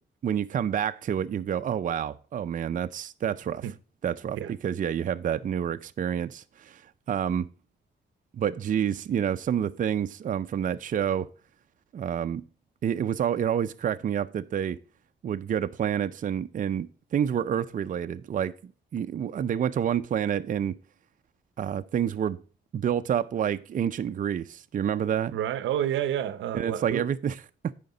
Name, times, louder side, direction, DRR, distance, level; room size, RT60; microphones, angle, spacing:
voice 1, 0.2-3.7 4.0-6.8 7.1-7.5 8.3-11.3 11.9-12.4 12.8-14.8 15.2-18.5 18.9-20.7 21.6-22.4 22.7-25.4 26.5-27.3, right 9 dB, 45° right, 0.5 m, -28 dB
voice 2, 25.3-27.1, right 10 dB, 90° right, 0.6 m, -29 dB
9.4 x 5.1 x 3.8 m
cardioid pair, 95°, 19 cm